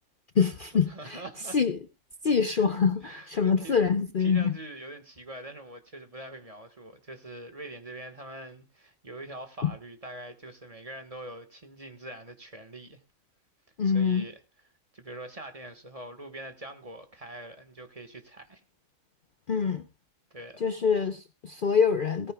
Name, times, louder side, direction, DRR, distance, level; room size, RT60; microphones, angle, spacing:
voice 1, 0.3-1.2 1.5-1.8 2.2-4.5 9.6-9.7 13.8-14.3 19.5-19.9 20.6-22.3, left 6 dB, 45° left, 0.8 m, -25 dB
voice 2, 0.9-1.6 2.5-2.6 3.0-3.8 4.2-13.0 13.8-14.4 14.9-18.6 20.3-20.7, right 1 dB, 25° right, 1.5 m, -43 dB
17.5 x 15.0 x 2.3 m
omnidirectional pair, 1.4 m